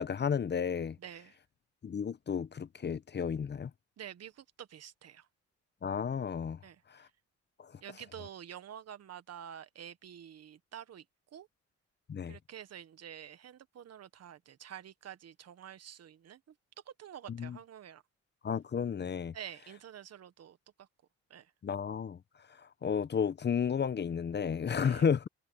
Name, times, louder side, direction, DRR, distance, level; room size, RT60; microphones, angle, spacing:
voice 1, 0.0-1.0 1.8-3.7 5.8-6.6 7.6-7.7 12.1-12.4 17.3-17.6 18.4-19.3 21.6-22.2 22.8-25.3, left 7 dB, 35° left, 0.8 m, -32 dB
voice 2, 1.0-1.4 4.0-5.3 6.6-6.8 7.8-11.0 11.3-11.5 12.2-16.4 17.0-18.0 19.3-20.9 21.3-21.5 24.8-25.1, right 9 dB, 55° right, 1.3 m, -48 dB
cardioid pair, 90°, 30 cm